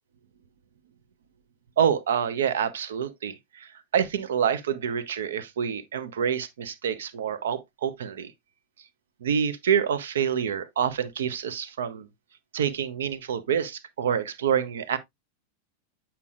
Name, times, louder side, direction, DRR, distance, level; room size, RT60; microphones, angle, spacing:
voice 1, 1.8-8.3 9.2-12.1 12.5-15.0, right 8 dB, 60° right, 0.7 m, -27 dB
8.3 x 5.7 x 2.3 m
figure-of-eight pair, 90°, 0 cm